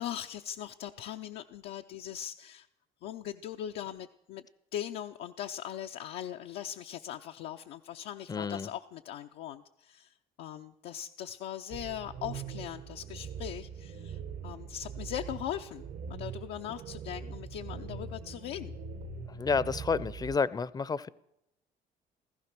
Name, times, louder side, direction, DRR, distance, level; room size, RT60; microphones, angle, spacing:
voice 1, 0.0-2.7 3.0-4.4 4.7-10.1 10.4-18.7, left 11 dB, 80° left, 4 dB, 0.6 m, -40 dB
voice 2, 8.3-8.7 19.3-21.1, left 5 dB, 25° left, 19 dB, 0.6 m, -30 dB
sound 1, 11.7-20.3, right 6 dB, 75° right, 1.9 m, -42 dB
15.0 x 15.0 x 6.0 m, 0.84 s
cardioid pair, 110°, 17 cm